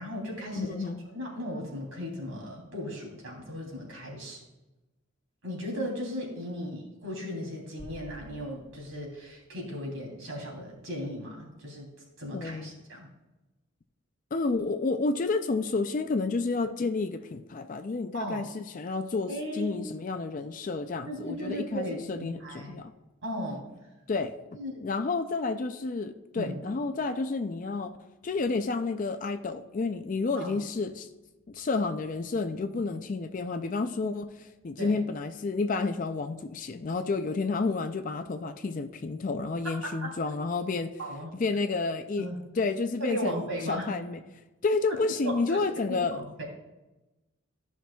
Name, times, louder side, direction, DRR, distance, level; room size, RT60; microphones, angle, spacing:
voice 1, 0.0-4.4 5.4-11.9 12.2-13.1 18.1-18.4 19.3-19.7 21.1-22.7 23.2-23.6 24.5-24.7 26.4-26.5 30.4-30.6 34.8-35.0 40.0-40.1 41.0-41.3 42.2-42.4 43.0-43.9 45.2-45.6 45.9-46.4, equal, 80° right, 3.0 m, -36 dB
voice 2, 0.5-1.0 12.3-12.7 14.3-22.9 24.1-24.3 24.8-28.0 28.2-31.1 31.5-40.9 41.4-42.3 42.6-44.2 44.6-46.2, left 3 dB, 40° left, 0.4 m, -30 dB
sound 1, 7.8-10.3, equal, 10° left, 1.8 m, -51 dB
14.0 x 5.8 x 2.3 m
head